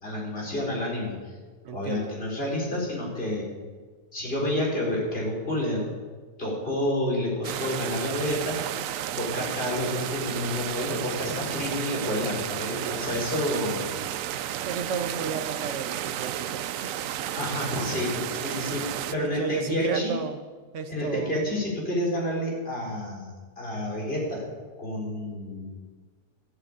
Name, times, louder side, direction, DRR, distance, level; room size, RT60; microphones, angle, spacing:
voice 1, 0.0-1.3 1.7-3.5 4.1-5.9 6.4-8.6 9.1-14.1 17.3-20.2 20.9-23.3 23.6-24.4 24.8-25.7, left 1 dB, 35° left, -3 dB, 4.4 m, -29 dB
voice 2, 1.6-2.2 14.6-17.0 19.2-20.4 20.7-21.3, right 6 dB, 50° right, 7 dB, 1.3 m, -33 dB
sound 1, 7.4-19.2, right 11 dB, 70° right, 0.8 m, -32 dB
14.0 x 8.2 x 8.7 m, 1.5 s
omnidirectional pair, 1.7 m